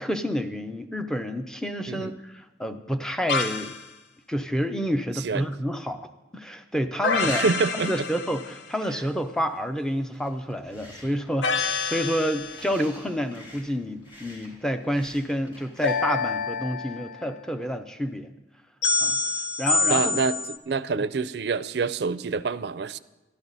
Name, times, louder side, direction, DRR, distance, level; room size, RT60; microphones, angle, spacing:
voice 1, 0.0-3.7 4.3-6.0 6.3-7.4 7.7-18.3 19.0-19.2 19.6-20.2 20.9-21.0, equal, 5° left, 8 dB, 0.5 m, -29 dB
sound 1, 3.3-3.8 7.0-8.7 11.4-12.8 15.8-17.3 18.8-20.6, left 4 dB, 85° left, 0.7 m, -27 dB
voice 2, 5.1-5.5 7.2-7.9 19.9-20.4 20.7-23.0, right 4 dB, 60° right, 14 dB, 0.4 m, -26 dB
sound 2, 10.1-15.9, equal, 30° left, 4.1 m, -49 dB
12.5 x 12.0 x 4.0 m, 1.1 s
head